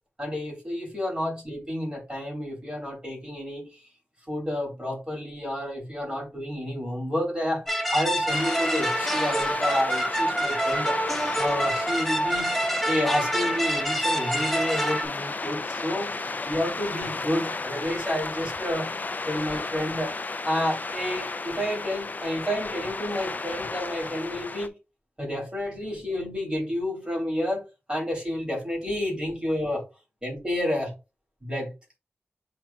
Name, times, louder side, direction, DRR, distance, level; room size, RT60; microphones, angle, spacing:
voice 1, 0.2-3.7 4.3-11.0 11.4-18.9 19.3-20.1 20.4-24.7 25.2-29.8 30.2-30.9 31.4-31.7, left 1 dB, 20° right, 2.6 m, -30 dB
sound 1, 7.7-15.1, equal, 5° left, 0.7 m, -26 dB
sound 2, 8.3-24.7, left 3 dB, 40° left, 0.3 m, -34 dB
8.2 x 2.8 x 2.2 m
wide cardioid pair, 65°, 4 cm